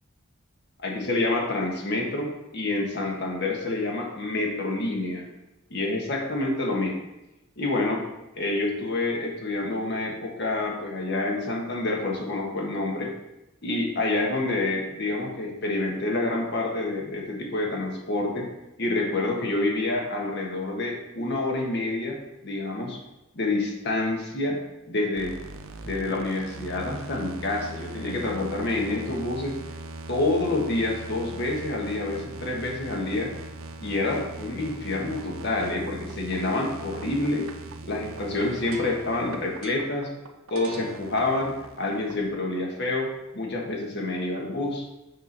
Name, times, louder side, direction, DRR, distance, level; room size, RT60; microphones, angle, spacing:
voice 1, 0.8-5.3 5.7-7.0 7.6-8.0 8.4-13.1 13.6-18.5 18.8-22.2 22.4-23.0 23.3-24.6 24.9-25.4 25.8-29.6 30.1-33.3 33.8-37.4 37.9-40.1 40.5-44.8, left 2 dB, 55° left, 0 dB, 1.5 m, -28 dB
sound 1, 25.1-42.3, right 2 dB, 80° right, 0.7 m, -40 dB
6.8 x 3.6 x 5.9 m, 0.95 s
head